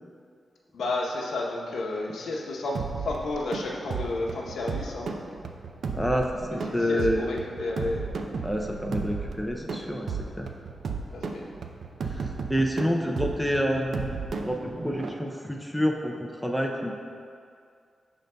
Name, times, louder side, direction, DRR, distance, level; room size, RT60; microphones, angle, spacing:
voice 1, 0.7-5.1 6.7-8.1 11.1-11.4, left 2 dB, 90° left, -2 dB, 0.8 m, -32 dB
sound 1, 2.7-15.1, right 4 dB, 60° right, 0.4 m, -34 dB
voice 2, 5.9-7.2 8.4-10.5 12.0-14.1 14.4-17.0, equal, ahead, 0 dB, 0.4 m, -28 dB
11.5 x 3.9 x 2.2 m, 2.3 s
wide cardioid pair, 170°, 0 cm